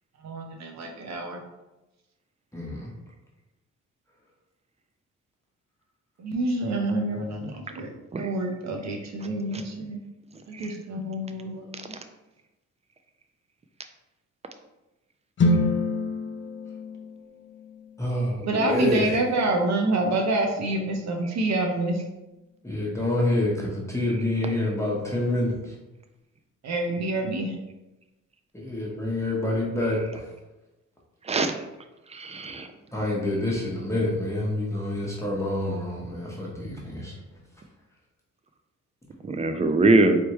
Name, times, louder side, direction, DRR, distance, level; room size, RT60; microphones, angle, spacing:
voice 1, 0.2-1.4 6.2-7.9 8.2-10.0 10.5-11.8 18.4-22.0 26.6-27.6, right 2 dB, 60° right, 2 dB, 1.0 m, -27 dB
voice 2, 2.5-2.9 18.0-19.2 22.6-25.7 28.5-30.3 32.9-37.1, left 1 dB, 10° left, -4 dB, 1.1 m, -27 dB
sound 1, 15.4-19.4, left 2 dB, 40° left, 0.6 m, -28 dB
voice 3, 32.1-32.7 39.2-40.2, right 2 dB, 20° right, 7 dB, 0.5 m, -22 dB
4.3 x 3.4 x 3.1 m, 1.0 s
cardioid pair, 90°, 30 cm